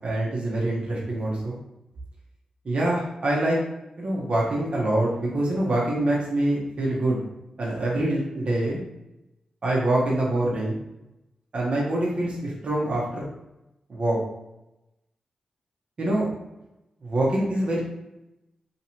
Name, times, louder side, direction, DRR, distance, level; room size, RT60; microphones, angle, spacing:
voice 1, 0.0-1.6 2.6-3.6 4.0-7.3 7.6-8.8 9.6-10.8 11.5-13.2 13.9-14.2 16.0-16.3 17.0-17.8, right 1 dB, 60° right, -4 dB, 1.0 m, -25 dB
3.1 x 3.0 x 2.8 m, 0.93 s
cardioid pair, 55°, 2 cm